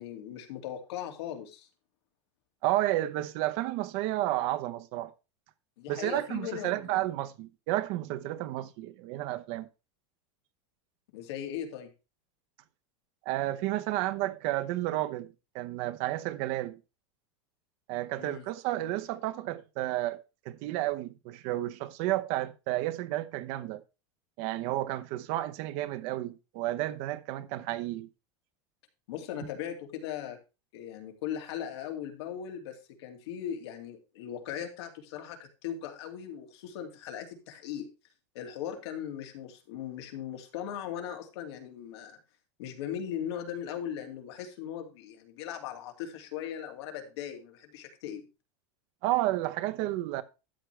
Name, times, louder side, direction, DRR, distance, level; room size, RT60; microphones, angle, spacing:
voice 1, 0.0-1.7 5.8-7.1 11.1-11.9 18.2-18.4 29.1-30.4 30.7-37.9 38.3-42.2 42.6-48.3, left 9 dB, 65° left, 2.5 m, -39 dB
voice 2, 2.6-5.1 5.9-9.7 13.3-15.3 15.5-16.8 17.9-23.8 24.4-28.1 49.0-50.2, right 15 dB, 40° right, 0.9 m, -31 dB
13.0 x 7.6 x 3.3 m
supercardioid pair, 170°, 15 cm